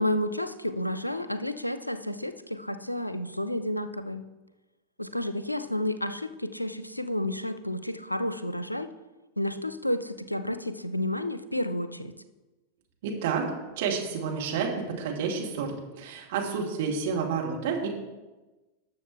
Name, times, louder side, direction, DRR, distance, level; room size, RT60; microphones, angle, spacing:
voice 1, 0.0-4.2 5.0-8.9 9.4-12.1, left 1 dB, 90° left, 12 dB, 0.5 m, -31 dB
voice 2, 13.0-17.9, right 5 dB, 55° right, 0 dB, 2.2 m, -30 dB
19.0 x 6.9 x 3.3 m, 1.2 s
figure-of-eight pair, 90°, 0 cm